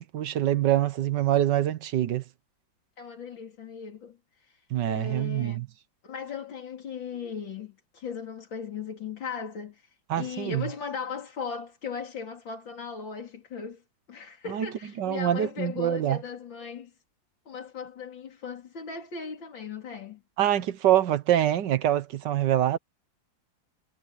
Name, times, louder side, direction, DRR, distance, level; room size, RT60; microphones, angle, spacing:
voice 1, 0.0-2.2 4.7-5.7 10.1-10.7 14.5-14.7 15.0-16.2 20.4-22.8, right 12 dB, 70° right, 1.5 m, -25 dB
voice 2, 3.0-5.6 6.0-13.8 14.1-17.0 17.5-20.2, left 6 dB, 80° left, 4.0 m, -38 dB
omnidirectional pair, 2.1 m